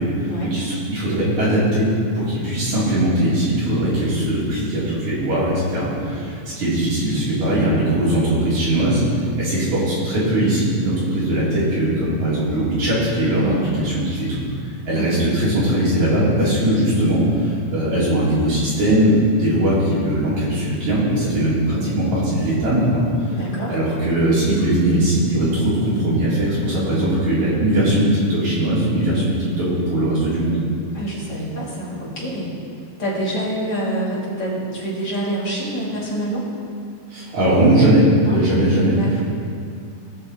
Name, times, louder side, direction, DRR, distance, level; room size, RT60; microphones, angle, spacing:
voice 1, 0.0-1.9 2.1-14.4 14.8-23.0 23.7-30.6 37.1-39.2, right 1 dB, 55° right, -9 dB, 4.8 m, -20 dB
voice 2, 13.4-13.8 14.9-15.2 23.3-23.8 30.9-32.5 33.0-36.5 38.2-38.4 38.9-39.2, right 1 dB, 30° left, -7 dB, 2.8 m, -26 dB
19.0 x 6.5 x 4.4 m, 2.3 s
omnidirectional pair, 3.9 m